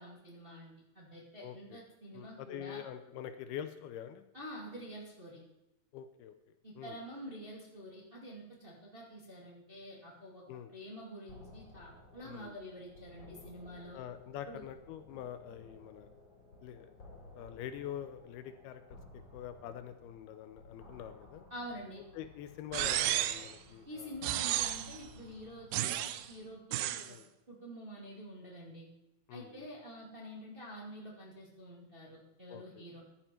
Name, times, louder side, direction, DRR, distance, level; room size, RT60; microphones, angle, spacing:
voice 1, 0.0-2.8 4.3-5.4 6.6-10.4 10.7-14.0 14.5-14.6 21.5-22.0 23.9-27.2 27.5-28.9 29.3-33.0, equal, 20° right, -3 dB, 1.7 m, -48 dB
voice 2, 1.4-1.8 2.1-4.3 5.9-6.3 6.8-7.0 10.5-10.7 12.2-12.5 13.9-16.1 16.6-16.9 17.3-21.4 22.1-24.2 27.0-27.3 29.3-29.7 32.5-32.8, left 10 dB, 80° left, 10 dB, 2.7 m, -45 dB
sound 1, 11.3-26.5, left 2 dB, 30° left, 4.5 m, -56 dB
sound 2, 22.7-23.5 24.2-25.0 25.7-26.3 26.7-27.1, right 13 dB, 80° right, 2.5 m, -32 dB
14.5 x 10.5 x 4.5 m, 0.91 s
omnidirectional pair, 4.6 m